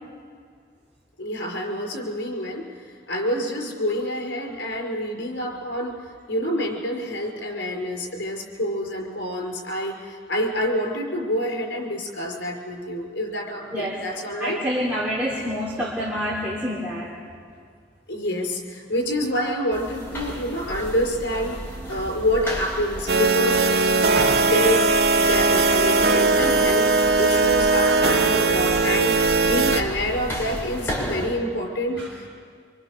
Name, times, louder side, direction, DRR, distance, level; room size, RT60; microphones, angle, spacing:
voice 1, 1.2-2.7 3.1-5.9 6.3-14.6 18.1-21.6 21.9-24.9 25.2-26.9 27.2-29.2 29.4-32.4, equal, 90° left, 1 dB, 5.6 m, -27 dB
voice 2, 14.4-17.1 21.8-22.1 32.0-32.1, equal, 10° right, -7 dB, 3.3 m, -27 dB
sound 1, 19.7-31.3, equal, 10° left, 5.2 m, -34 dB
sound 2, 23.1-29.8, right 3 dB, 55° right, 0.8 m, -19 dB
25.5 x 24.5 x 6.8 m, 2.1 s
head